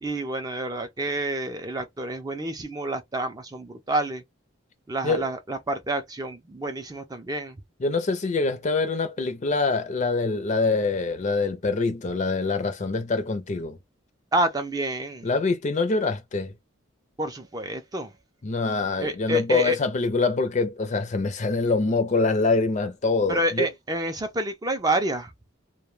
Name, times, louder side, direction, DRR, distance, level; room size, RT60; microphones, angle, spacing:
voice 1, 0.0-4.2 4.9-7.6 14.3-15.3 17.2-18.1 19.0-19.8 23.3-25.3, right 1 dB, 20° right, 0.4 m, -28 dB
voice 2, 7.8-13.8 15.2-16.5 18.4-23.7, left 3 dB, 35° left, 0.5 m, -25 dB
2.2 x 2.2 x 3.1 m
head